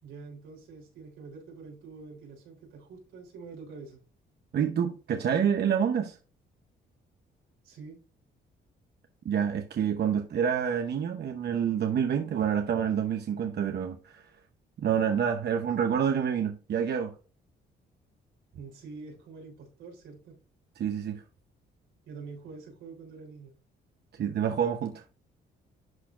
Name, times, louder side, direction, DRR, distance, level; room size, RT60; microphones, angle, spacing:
voice 1, 0.0-4.0 7.6-8.0 18.5-20.4 22.1-23.5, right 4 dB, 85° right, 3.5 m, -46 dB
voice 2, 4.5-6.2 9.2-14.3 14.8-17.1 20.8-21.2 24.2-25.0, right 8 dB, 55° right, 0.9 m, -28 dB
11.0 x 4.1 x 2.5 m
cardioid pair, 90°, 20 cm